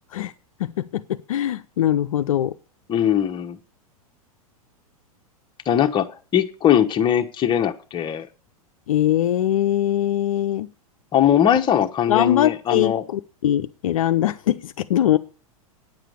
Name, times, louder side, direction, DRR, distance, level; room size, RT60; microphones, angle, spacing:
voice 1, 0.6-2.5 8.9-10.7 12.1-15.2, left 12 dB, 65° left, 0.6 m, -22 dB
voice 2, 2.9-3.6 5.7-8.3 11.1-13.0, left 10 dB, 25° left, 1.0 m, -20 dB
9.3 x 7.4 x 6.7 m
figure-of-eight pair, 95°, 19 cm